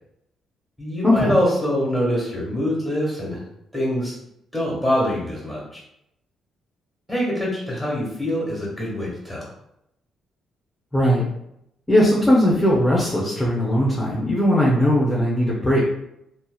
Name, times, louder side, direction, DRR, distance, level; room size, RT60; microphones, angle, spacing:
voice 1, 0.8-3.4 3.7-4.1 4.5-5.8 7.1-9.4, equal, 5° right, -4 dB, 1.3 m, -24 dB
voice 2, 10.9-11.2 11.9-15.8, equal, 15° left, -5 dB, 0.6 m, -19 dB
2.7 x 2.1 x 2.3 m, 0.79 s
cardioid pair, 85°, 0 cm